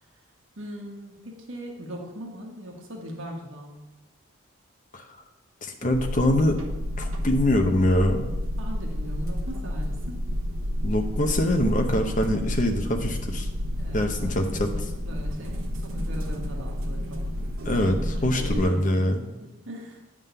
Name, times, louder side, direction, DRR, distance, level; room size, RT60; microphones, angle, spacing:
voice 1, 0.6-3.8 8.6-10.2 13.8-14.4 15.0-20.0, equal, 65° right, -1 dB, 1.4 m, -40 dB
voice 2, 5.6-6.6 7.0-8.3 10.8-13.5 13.9-14.9 17.6-19.3, left 1 dB, 35° left, 4 dB, 0.8 m, -24 dB
sound 1, 5.9-18.6, equal, 85° right, 1.1 m, -30 dB
9.2 x 3.7 x 6.8 m, 1.0 s
head